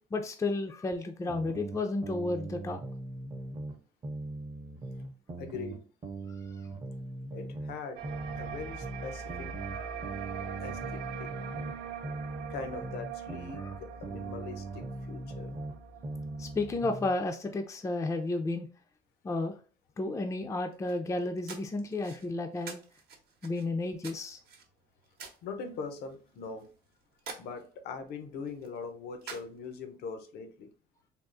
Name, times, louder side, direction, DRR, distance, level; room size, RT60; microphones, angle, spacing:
voice 1, 0.1-2.8 6.3-6.4 9.7-9.9 13.6-13.7 16.4-18.7 19.2-19.6 20.0-22.8 23.4-24.4, left 2 dB, 15° left, 0.4 m, -32 dB
sound 1, 1.3-3.8 4.0-7.8 8.0-11.8 12.0-15.8 16.0-17.1, right 2 dB, 30° right, 0.6 m, -40 dB
voice 2, 5.4-5.9 7.3-8.1 8.4-9.5 10.6-11.3 12.5-15.6 25.4-26.7 27.4-30.7, left 5 dB, 75° left, 0.6 m, -41 dB
sound 2, 8.0-17.0, right 7 dB, 85° right, 0.5 m, -42 dB
sound 3, 20.7-30.0, right 5 dB, 65° right, 0.8 m, -50 dB
3.5 x 2.4 x 2.5 m
cardioid pair, 110°, 17 cm